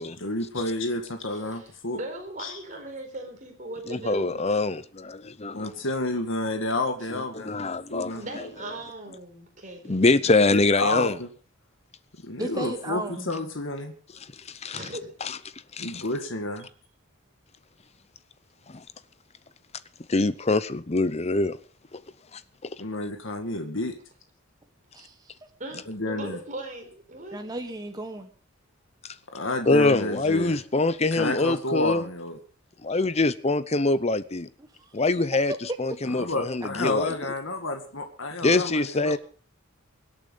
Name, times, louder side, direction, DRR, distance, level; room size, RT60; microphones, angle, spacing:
voice 1, 0.2-2.0 2.4-2.5 5.5-7.7 7.9-8.3 10.5-11.3 12.2-13.9 15.8-16.7 22.8-24.0 25.9-26.4 29.3-30.6 31.1-32.4 36.1-39.2, left 2 dB, 60° left, 2.0 m, -30 dB
voice 2, 1.3-1.7 1.9-4.5 8.1-10.1 14.7-15.1 22.8-22.9 25.6-27.4, right 2 dB, 35° right, 4.4 m, -39 dB
voice 3, 3.9-5.7 7.1-8.1 9.9-11.2 14.6-14.8 15.2-15.4 15.8-16.0 18.7-18.8 20.1-21.6 21.9-22.0 22.6-22.7 29.7-32.1 32.8-34.5 34.9-35.5 35.8-37.1 38.4-39.2, left 2 dB, 30° left, 0.7 m, -24 dB
voice 4, 12.4-13.3 24.9-25.5 27.3-28.3 34.6-35.0, right 2 dB, 20° right, 1.0 m, -36 dB
24.0 x 8.7 x 5.4 m
head